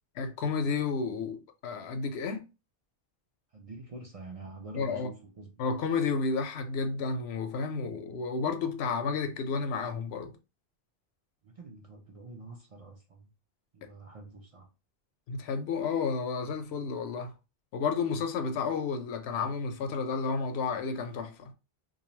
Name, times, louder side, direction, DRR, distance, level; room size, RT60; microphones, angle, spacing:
voice 1, 0.2-2.4 4.7-5.1 5.6-10.3 15.3-17.3 17.7-21.5, left 5 dB, 80° left, 0.8 m, -31 dB
voice 2, 3.5-5.7 11.4-13.3 13.7-14.7, right 2 dB, 45° right, 0.5 m, -46 dB
2.5 x 2.3 x 3.0 m
omnidirectional pair, 1.1 m